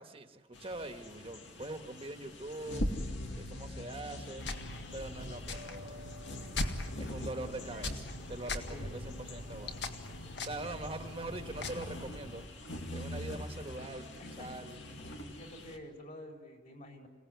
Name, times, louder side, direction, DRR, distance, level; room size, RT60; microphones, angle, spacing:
voice 1, 0.0-2.9 3.3-4.5 4.9-6.1 7.0-9.9 10.4-12.4 12.9-14.1 14.4-14.8, right 2 dB, 30° right, 6 dB, 1.5 m, -43 dB
sound 1, 0.5-15.8, left 1 dB, 80° left, 2.4 m, -43 dB
sound 2, 4.4-12.4, left 2 dB, 65° left, 1.9 m, -41 dB
sound 3, 5.5-7.4, left 2 dB, 50° right, 1.6 m, -53 dB
voice 2, 8.7-9.0 13.5-14.9 15.2-17.1, equal, 45° left, 2 dB, 4.7 m, -50 dB
28.0 x 18.0 x 9.5 m, 1.4 s
head